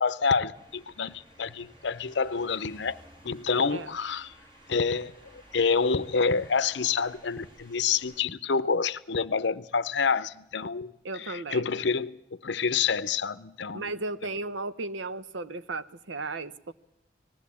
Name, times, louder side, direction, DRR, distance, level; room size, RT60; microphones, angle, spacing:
voice 1, 0.0-3.0 3.2-4.3 4.7-14.0, left 5 dB, 65° left, 0.7 m, -28 dB
sound 1, 0.5-8.2, right 1 dB, 25° right, 3.1 m, -55 dB
voice 2, 11.0-11.7 13.7-16.7, right 3 dB, 80° right, 0.8 m, -35 dB
19.5 x 15.5 x 8.5 m
head